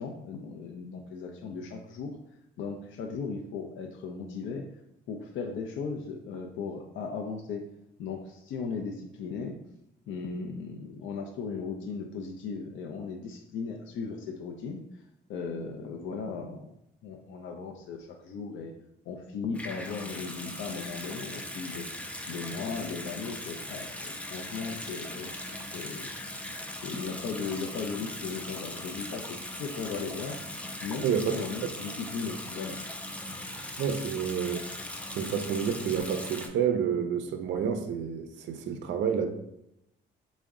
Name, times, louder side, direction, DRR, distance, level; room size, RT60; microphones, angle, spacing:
voice 1, 0.0-2.2 2.6-4.7 5.1-7.6 8.0-9.6 10.1-14.8 15.3-16.7 17.0-18.7 19.1-21.9 22.3-25.3 25.7-26.1 26.8-30.4 30.8-31.1 31.3-32.8, left 5 dB, 75° left, 2 dB, 0.4 m, -37 dB
Water tap faucet / Sink (filling or washing) / Bathtub (filling or washing), 19.5-36.5, left 1 dB, 5° left, 0.3 m, -39 dB
voice 2, 31.0-31.4 33.8-34.7 35.1-39.3, right 7 dB, 70° right, 7 dB, 0.4 m, -29 dB
3.5 x 2.1 x 3.5 m, 0.81 s
cardioid pair, 90°, 20 cm